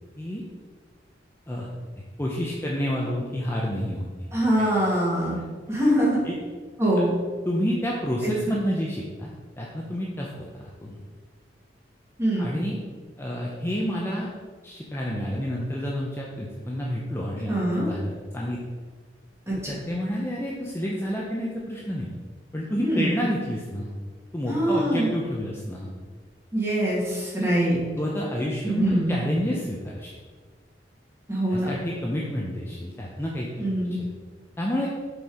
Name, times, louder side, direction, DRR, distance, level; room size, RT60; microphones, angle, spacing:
voice 1, 2.2-4.1 4.6-4.7 5.3-5.4 6.2-6.4 7.0-7.1 7.4-9.3 9.6-11.0 12.4-12.8 13.2-14.3 14.6-18.6 19.7-22.1 22.5-23.9 24.3-25.9 28.0-30.2 31.5-33.5 34.0-34.1 34.6-34.9, equal, 15° left, -3 dB, 0.7 m, -29 dB
voice 2, 4.3-5.3 5.7-6.2 6.8-7.1 8.2-8.3 12.2-12.5 17.5-17.9 19.5-19.8 22.8-23.1 24.5-25.2 26.5-27.8 28.6-29.1 31.3-31.7 33.6-34.0, right 1 dB, 15° right, -6 dB, 2.2 m, -23 dB
6.5 x 4.5 x 4.9 m, 1.5 s
head